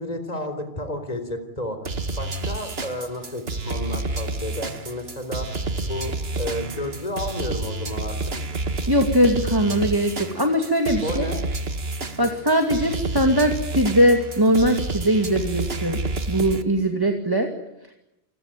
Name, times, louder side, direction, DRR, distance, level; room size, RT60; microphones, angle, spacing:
voice 1, 0.0-8.4 10.9-11.4 12.2-12.3, left 1 dB, 40° left, 8 dB, 4.0 m, -32 dB
sound 1, 1.8-16.6, right 2 dB, 70° right, 1.9 m, -29 dB
voice 2, 8.9-11.3 12.2-16.0 16.3-17.5, equal, 20° right, 4 dB, 2.3 m, -20 dB
29.0 x 22.5 x 9.1 m, 0.88 s
omnidirectional pair, 1.1 m